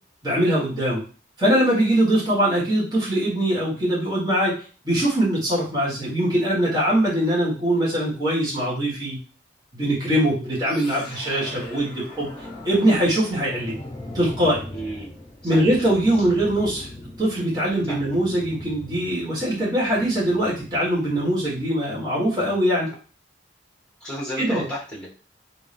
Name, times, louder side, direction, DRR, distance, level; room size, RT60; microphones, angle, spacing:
voice 1, 0.2-1.0 1.4-4.5 4.8-9.2 9.7-13.8 14.1-14.6 15.4-16.9 17.2-22.9 24.4-24.6, right 1 dB, 20° right, -8 dB, 1.4 m, -22 dB
sound 1, 10.6-21.7, left 1 dB, 20° left, 1.3 m, -40 dB
voice 2, 14.7-15.1 15.4-15.7 17.9-18.0 24.0-25.1, equal, 5° left, -6 dB, 1.4 m, -32 dB
3.5 x 2.8 x 3.3 m, 0.37 s
head